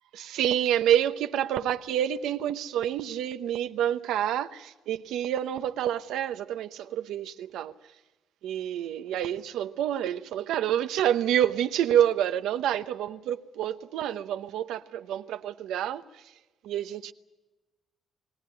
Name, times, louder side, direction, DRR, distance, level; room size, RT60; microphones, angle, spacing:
voice 1, 0.1-7.7 8.4-16.0 16.6-17.1, right 10 dB, 85° right, 0.9 m, -28 dB
22.5 x 17.0 x 9.7 m
cardioid pair, 90°, 0 cm